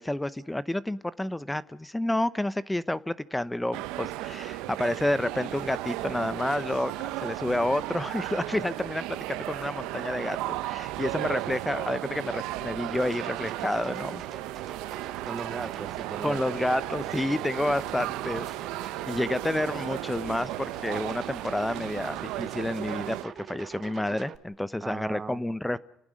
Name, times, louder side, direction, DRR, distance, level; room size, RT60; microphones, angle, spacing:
voice 1, 0.0-14.2 16.2-18.5 19.1-25.8, left 1 dB, 10° left, 0.8 m, -30 dB
sound 1, 3.7-23.3, right 17 dB, 85° right, 0.8 m, -35 dB
sound 2, 5.4-20.9, left 7 dB, 85° left, 3.0 m, -57 dB
sound 3, 12.9-24.4, right 8 dB, 55° right, 1.6 m, -44 dB
voice 2, 15.2-16.4 24.8-25.4, right 4 dB, 30° right, 0.9 m, -37 dB
30.0 x 18.5 x 6.4 m
supercardioid pair, 85°, 0 cm